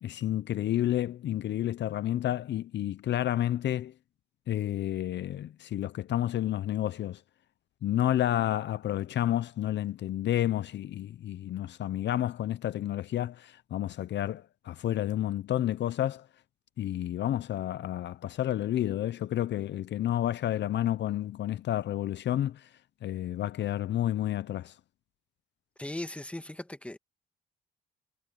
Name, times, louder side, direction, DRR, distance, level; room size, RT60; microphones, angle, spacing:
voice 1, 0.0-3.9 4.5-7.2 7.8-16.3 16.8-22.7 23.0-24.8, left 12 dB, 65° left, 0.7 m, -30 dB
voice 2, 25.8-27.0, left 1 dB, 5° left, 1.5 m, -38 dB
cardioid pair, 90°, 20 cm